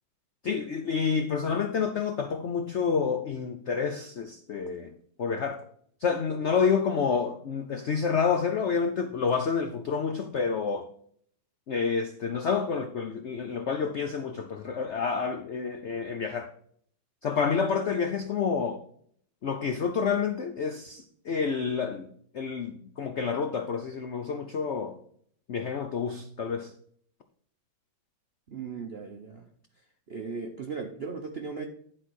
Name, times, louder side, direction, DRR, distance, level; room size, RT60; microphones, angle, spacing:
voice 1, 0.4-4.9 5.2-5.6 6.0-10.9 11.7-16.5 17.2-18.8 19.4-22.1 22.3-25.0 25.5-26.7, left 6 dB, 80° left, 6 dB, 0.6 m, -29 dB
voice 2, 28.5-29.4 30.1-31.6, right 5 dB, 65° right, 4 dB, 0.6 m, -37 dB
11.0 x 4.1 x 6.2 m, 0.62 s
omnidirectional pair, 2.1 m